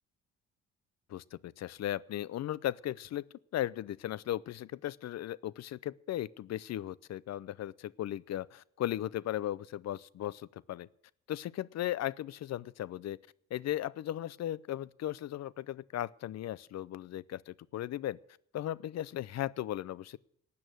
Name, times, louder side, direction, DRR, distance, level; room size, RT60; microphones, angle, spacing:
voice 1, 1.1-3.2 3.5-10.9 11.3-13.2 13.5-18.2 18.5-20.2, left 13 dB, 60° left, 0.5 m, -37 dB
12.5 x 8.6 x 9.3 m
cardioid pair, 90°, 30 cm